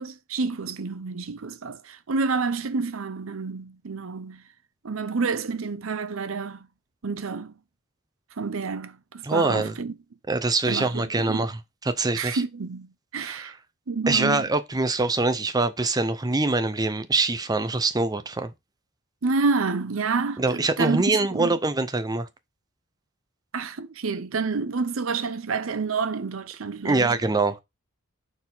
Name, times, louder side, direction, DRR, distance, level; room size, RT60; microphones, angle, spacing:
voice 1, 0.0-4.4 4.8-6.7 7.0-7.5 8.4-9.9 10.7-11.5 12.1-13.5 13.9-14.5 19.2-21.0 21.3-21.5 23.5-27.1, right 4 dB, 70° right, 0.7 m, -29 dB
voice 2, 9.2-9.8 10.3-11.6 11.8-12.4 13.2-13.5 14.1-18.5 20.4-22.3 26.8-27.6, right 3 dB, 20° right, 0.6 m, -24 dB
4.5 x 4.2 x 5.5 m
head